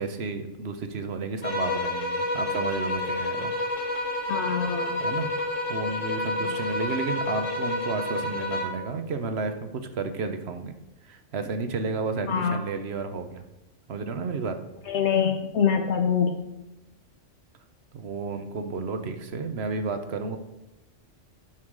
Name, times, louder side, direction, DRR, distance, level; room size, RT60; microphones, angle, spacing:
voice 1, 0.0-3.5 5.0-5.3 5.7-10.7 11.0-13.4 13.9-14.6 17.9-20.4, right 4 dB, 60° right, 8 dB, 1.1 m, -32 dB
sound 1, 1.4-8.9, left 2 dB, 90° left, 1.7 m, -29 dB
voice 2, 4.3-5.0 6.4-6.6 12.3-12.6 14.9-16.4, left 7 dB, 70° left, 6 dB, 1.0 m, -25 dB
8.1 x 5.9 x 6.4 m, 0.95 s
omnidirectional pair, 1.3 m